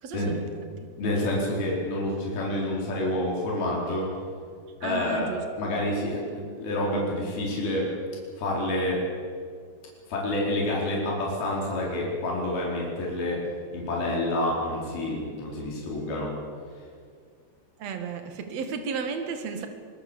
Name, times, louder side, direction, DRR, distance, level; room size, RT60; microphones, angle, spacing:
voice 1, 0.0-0.9 4.8-5.4 17.8-19.7, right 5 dB, 50° right, 6 dB, 2.4 m, -33 dB
voice 2, 1.0-4.1 4.8-5.3 5.6-7.9 8.4-9.0 10.1-13.4 13.7-16.3, left 1 dB, 60° left, -3 dB, 6.3 m, -28 dB
24.5 x 19.5 x 7.1 m, 2.1 s
omnidirectional pair, 4.9 m